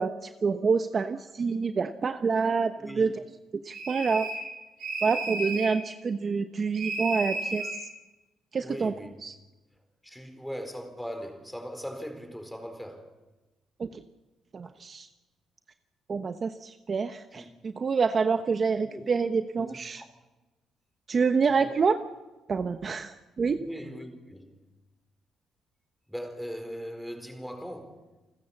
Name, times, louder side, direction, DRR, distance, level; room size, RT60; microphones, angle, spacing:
voice 1, 0.0-3.1 3.6-4.3 5.0-7.7 8.5-8.9 9.2-9.3 13.8-14.0 14.5-15.1 16.1-20.0 21.1-22.0 22.5-23.6, right 5 dB, 40° right, 1.0 m, -27 dB
voice 2, 2.8-3.1 7.6-7.7 8.6-9.1 10.0-13.1 17.3-17.5 18.8-19.1 19.6-20.0 21.4-21.7 23.6-24.6 26.1-28.0, equal, ahead, 4.4 m, -40 dB
sound 1, 3.7-4.5 4.8-5.7 6.7-7.8, right 2 dB, 80° right, 7.2 m, -33 dB
29.0 x 14.5 x 7.2 m
cardioid pair, 90°, 0 cm